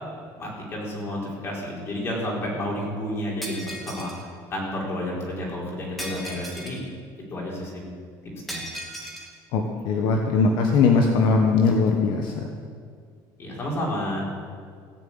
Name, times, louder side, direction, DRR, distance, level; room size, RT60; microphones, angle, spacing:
voice 1, 0.4-4.1 4.5-6.8 7.3-7.8 8.5-8.6 13.4-14.2, left 1 dB, 30° left, -3 dB, 4.4 m, -30 dB
Shatter, 3.4-4.2 6.0-6.8 8.5-9.3, equal, ahead, 2.0 m, -36 dB
voice 2, 9.5-12.4, left 4 dB, 65° left, 2 dB, 1.3 m, -20 dB
17.0 x 7.3 x 8.8 m, 2.1 s
cardioid pair, 150°, 8 cm